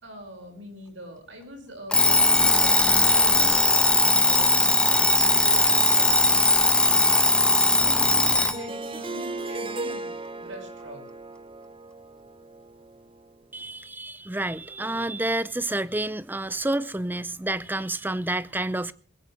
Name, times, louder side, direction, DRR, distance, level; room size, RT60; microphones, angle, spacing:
voice 1, 0.0-11.1, equal, 85° right, 5.7 m, -43 dB
Alarm, 1.9-8.6, left 2 dB, 5° left, 1.1 m, -19 dB
Harp, 8.4-13.3, right 2 dB, 30° right, 1.1 m, -36 dB
voice 2, 13.5-18.9, right 1 dB, 10° right, 0.6 m, -29 dB
20.5 x 16.5 x 3.3 m
head